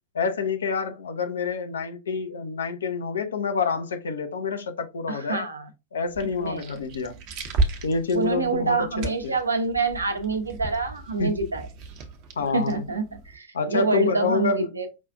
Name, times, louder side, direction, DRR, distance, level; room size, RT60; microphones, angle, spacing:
voice 1, 0.1-5.5 5.9-7.2 7.8-9.3 11.2-11.5 12.4-12.9 13.5-14.8, left 4 dB, 70° left, 0.6 m, -28 dB
voice 2, 5.1-5.7 6.4-6.7 8.1-11.7 12.5-14.9, right 3 dB, 80° right, 0.7 m, -26 dB
sound 1, 6.0-13.4, right 2 dB, 40° right, 0.7 m, -34 dB
5.2 x 2.4 x 2.3 m
figure-of-eight pair, 90°, 0 cm